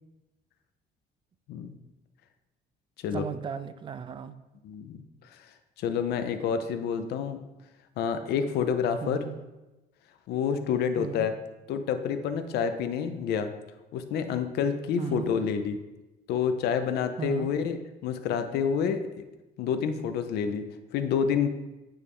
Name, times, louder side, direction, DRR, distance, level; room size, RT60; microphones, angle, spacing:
voice 1, 3.1-4.3 9.0-9.4 11.0-11.3 15.0-15.3 17.2-17.5, right 7 dB, 30° right, 12 dB, 0.4 m, -36 dB
voice 2, 4.6-5.0 5.8-7.4 8.0-9.2 10.3-11.3 11.7-13.5 13.9-15.8 16.3-19.0 19.6-20.7 20.9-21.5, left 7 dB, 75° left, 9 dB, 0.6 m, -28 dB
8.9 x 3.2 x 3.5 m, 1.1 s
cardioid pair, 110°, 17 cm